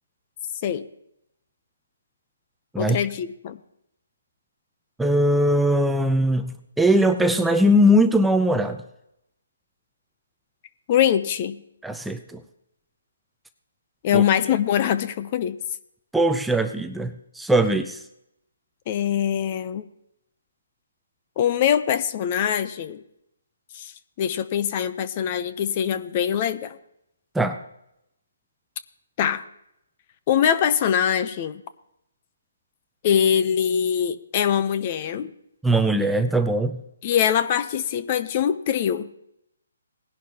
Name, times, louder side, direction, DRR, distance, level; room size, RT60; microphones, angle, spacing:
voice 1, 2.8-3.6 10.9-11.6 14.0-15.6 18.9-19.9 21.4-23.0 23.7-23.9 24.2-26.8 29.2-29.5 30.3-31.6 33.0-35.3 37.0-39.1, left 9 dB, 35° left, 13 dB, 0.7 m, -23 dB
voice 2, 5.0-8.8 11.8-12.4 14.1-14.2 16.1-18.0 27.3-27.6 35.6-36.8, equal, 5° right, 7 dB, 0.6 m, -20 dB
18.0 x 11.0 x 2.9 m, 0.80 s
hypercardioid pair, 150°, 0 cm